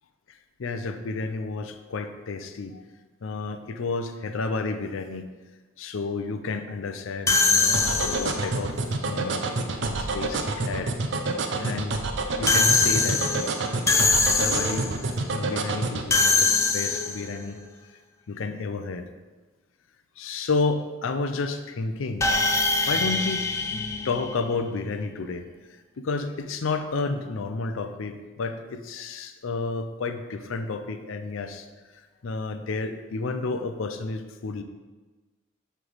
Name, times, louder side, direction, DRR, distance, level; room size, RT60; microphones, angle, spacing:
voice 1, 0.3-2.8 3.2-5.2 5.8-8.8 9.0-9.4 9.8-12.0 12.4-13.2 14.1-17.6 18.3-19.1 20.2-22.3 22.9-23.4 23.7-25.5 26.0-31.7 32.2-34.6, left 3 dB, 85° left, 9 dB, 0.5 m, -31 dB
sound 1, 7.3-8.5 12.5-15.0 16.1-17.4 22.2-24.7, left 3 dB, 15° left, 0.3 m, -23 dB
sound 2, 7.7-16.1, right 3 dB, 60° right, 0.5 m, -27 dB
7.6 x 3.3 x 4.1 m, 1.3 s
head